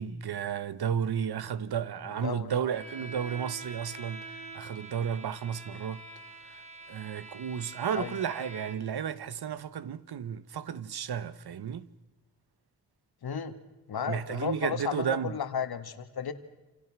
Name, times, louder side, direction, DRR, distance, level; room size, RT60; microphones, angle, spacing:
voice 1, 0.0-4.2 4.5-6.0 6.9-11.9 14.1-15.4, right 8 dB, 75° right, 1.2 m, -33 dB
voice 2, 2.1-2.6 7.9-8.2 13.2-13.6 13.9-16.3, left 7 dB, 70° left, 2.0 m, -34 dB
Bowed string instrument, 2.7-9.0, right 3 dB, 20° right, 4.2 m, -45 dB
28.0 x 27.5 x 6.1 m
wide cardioid pair, 100°, 38 cm